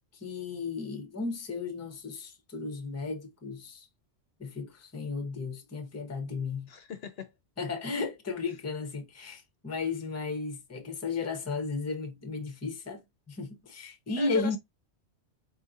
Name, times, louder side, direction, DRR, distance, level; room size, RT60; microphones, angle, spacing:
voice 1, 0.1-3.9 4.4-6.7 7.6-14.6, left 4 dB, 15° left, 0.6 m, -34 dB
voice 2, 6.7-7.3 14.2-14.6, left 6 dB, 65° left, 0.8 m, -39 dB
4.3 x 2.7 x 2.4 m
omnidirectional pair, 1.2 m